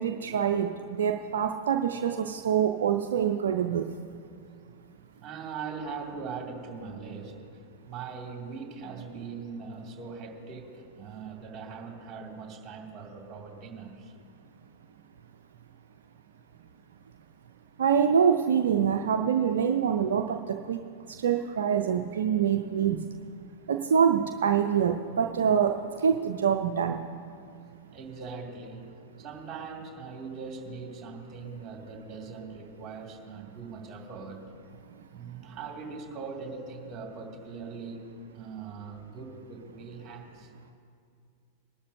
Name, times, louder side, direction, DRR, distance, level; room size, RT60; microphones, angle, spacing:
voice 1, 0.0-3.8 17.8-20.4 20.7-20.8 21.2-23.0 23.7-27.0, right 8 dB, 65° right, 5 dB, 0.5 m, -25 dB
voice 2, 5.2-7.5 7.8-14.1 21.3-21.5 27.9-28.9 29.2-34.5 35.1-38.0 38.3-40.5, right 5 dB, 25° right, 1 dB, 2.5 m, -41 dB
20.5 x 12.0 x 2.7 m, 2.4 s
figure-of-eight pair, 95°, 0 cm